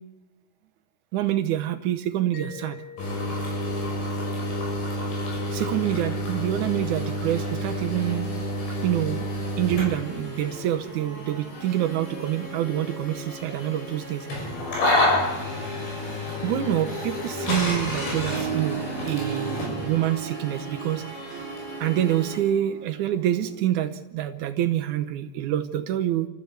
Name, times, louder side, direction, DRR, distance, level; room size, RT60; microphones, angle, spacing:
voice 1, 1.1-2.8 5.5-8.3 8.8-9.2 9.6-14.3 16.4-21.4 21.8-26.3, right 12 dB, 90° right, 7 dB, 1.7 m, -26 dB
Mallet percussion, 2.3-7.0, left 6 dB, 65° left, 4.9 m, -47 dB
sound 1, 3.0-22.4, left 1 dB, 85° left, 8.3 m, -30 dB
Harp, 17.2-23.7, right 10 dB, 55° right, 2.1 m, -36 dB
29.5 x 14.0 x 8.1 m, 1.0 s
omnidirectional pair, 4.8 m